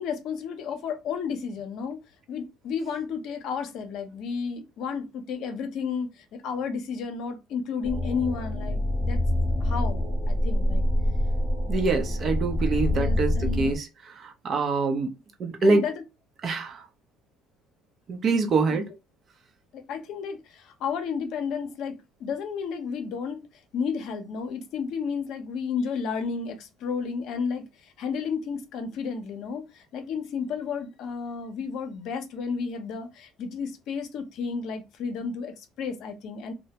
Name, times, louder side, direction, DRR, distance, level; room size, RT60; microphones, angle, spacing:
voice 1, 0.0-2.0 2.3-9.2 9.6-10.8 11.7-11.8 12.9-13.7 15.6-16.0 19.7-23.4 23.7-27.6 28.0-36.5, left 6 dB, 65° left, 0.6 m, -32 dB
sound 1, 7.8-13.8, left 1 dB, 5° right, 0.5 m, -26 dB
voice 2, 11.7-15.1 15.4-15.8 16.4-16.8 18.1-18.9, right 3 dB, 45° right, 0.6 m, -25 dB
2.1 x 2.1 x 2.8 m
supercardioid pair, 85°, 0 cm